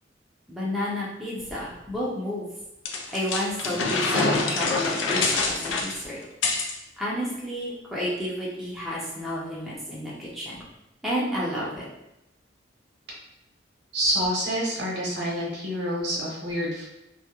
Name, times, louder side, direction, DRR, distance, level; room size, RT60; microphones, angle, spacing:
voice 1, 0.5-2.5 3.1-6.2 7.0-10.6 11.0-11.9, equal, ahead, -7 dB, 0.4 m, -31 dB
sound 1, 2.9-6.8, left 3 dB, 85° left, 0.4 m, -25 dB
voice 2, 13.9-16.9, equal, 65° right, -4 dB, 0.8 m, -27 dB
2.3 x 2.0 x 2.8 m, 0.87 s
head